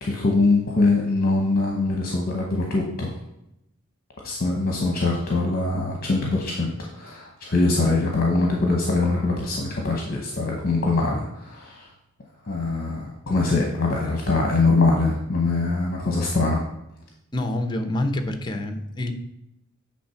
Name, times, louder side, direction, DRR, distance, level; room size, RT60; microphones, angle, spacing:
voice 1, 0.0-3.2 4.2-11.9 12.4-16.6, left 3 dB, 45° left, 0 dB, 0.9 m, -23 dB
voice 2, 17.3-19.1, left 1 dB, 20° left, 6 dB, 0.7 m, -27 dB
8.6 x 3.4 x 5.7 m, 0.86 s
head